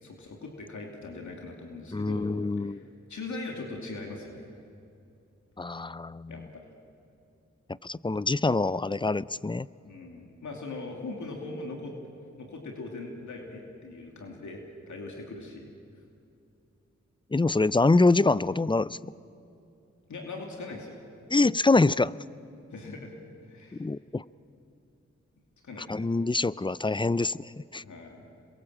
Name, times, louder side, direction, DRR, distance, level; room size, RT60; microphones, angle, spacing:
voice 1, 0.0-2.3 2.6-2.8 3.1-4.5 6.3-6.7 9.8-11.9 12.4-15.7 20.1-21.0 22.7-23.1 23.4-23.9 25.6-26.1 27.8-28.2, left 3 dB, 80° left, 1 dB, 2.7 m, -40 dB
voice 2, 1.9-2.8 5.6-6.5 7.7-9.7 17.3-19.0 21.3-22.1 23.8-24.2 25.8-27.8, left 3 dB, 15° left, 19 dB, 0.5 m, -25 dB
27.0 x 22.5 x 7.6 m, 2.6 s
cardioid pair, 45°, 29 cm